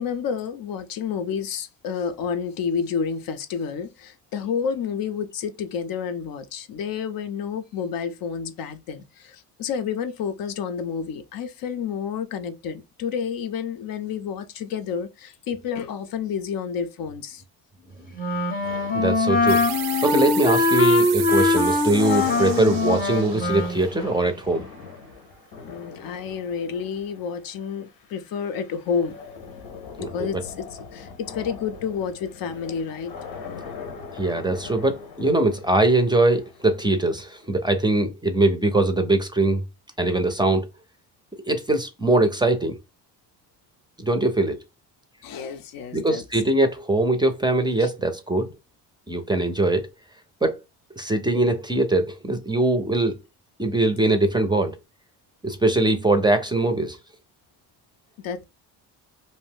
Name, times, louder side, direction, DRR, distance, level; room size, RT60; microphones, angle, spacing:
voice 1, 0.0-17.4 25.6-29.2 30.0-33.1 45.2-46.2 47.8-47.9 58.2-58.4, left 6 dB, 65° left, 0.6 m, -30 dB
Wind instrument woodwind instrument, 18.2-23.8, left 3 dB, 25° left, 0.7 m, -22 dB
sound 1, 18.6-37.7, left 5 dB, 85° left, 1.0 m, -41 dB
voice 2, 18.9-19.6 20.0-24.7 30.0-30.3 34.1-39.6 40.0-40.6 41.5-42.8 44.0-44.6 45.9-48.5 49.1-49.9 50.4-50.6 51.0-53.2 53.6-54.8 55.4-57.0, right 2 dB, 10° right, 0.5 m, -22 dB
sound 2, 19.5-24.7, right 13 dB, 80° right, 0.5 m, -34 dB
2.6 x 2.0 x 3.4 m
cardioid pair, 95°, 38 cm